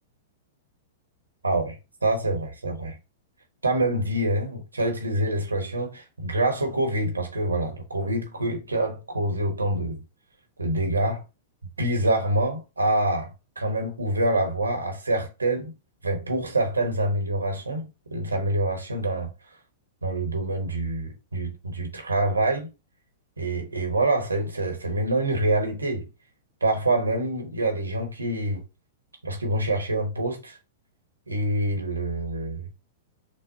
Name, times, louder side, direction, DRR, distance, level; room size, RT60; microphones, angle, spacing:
voice 1, 1.4-3.0 3.6-10.0 10.6-11.2 11.8-15.7 16.0-19.3 20.0-22.7 23.4-26.1 26.6-28.6 29.2-30.6 31.3-32.7, right 1 dB, 85° right, 1.1 m, -26 dB
6.3 x 2.1 x 2.8 m
figure-of-eight pair, 105°, 0 cm